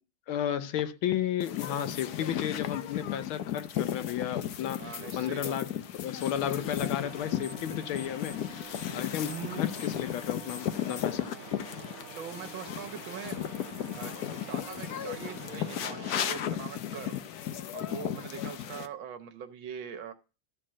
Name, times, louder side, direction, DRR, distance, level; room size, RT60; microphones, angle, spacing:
voice 1, 0.3-5.7 6.0-8.4 8.9-11.3, left 10 dB, 80° left, 1.6 m, -33 dB
sound 1, 1.4-18.9, left 10 dB, 65° left, 1.0 m, -35 dB
voice 2, 4.8-5.6 6.5-6.7 9.2-9.6 12.2-13.4 13.9-14.1 14.5-17.2 17.7-20.1, right 8 dB, 70° right, 1.7 m, -42 dB
sound 2, 6.2-6.5 6.7-7.7 7.9-11.2, left 2 dB, 45° left, 1.6 m, -48 dB
sound 3, 7.0-16.5, right 5 dB, 55° right, 1.2 m, -48 dB
13.0 x 4.5 x 7.4 m
omnidirectional pair, 2.2 m